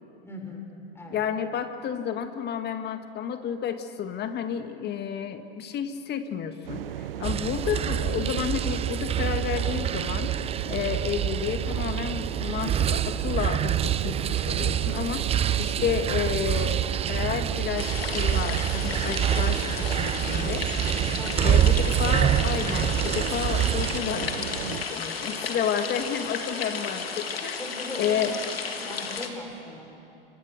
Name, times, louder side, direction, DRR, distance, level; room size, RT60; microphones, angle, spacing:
voice 1, 0.2-0.7 0.9-1.2 7.1-7.5 21.2-21.5 27.5-28.4 28.8-29.9, left 2 dB, 10° left, 1 dB, 5.9 m, -39 dB
voice 2, 1.1-20.7 21.4-27.6 28.0-28.3, left 8 dB, 35° left, 8 dB, 1.8 m, -31 dB
sound 1, 6.7-24.8, right 13 dB, 75° right, 0.7 m, -36 dB
sound 2, 7.2-24.0, right 10 dB, 20° right, 0.5 m, -26 dB
sound 3, 17.8-29.3, left 5 dB, 90° left, 2.2 m, -33 dB
28.0 x 25.5 x 6.6 m, 2.8 s
hypercardioid pair, 95°, 29 cm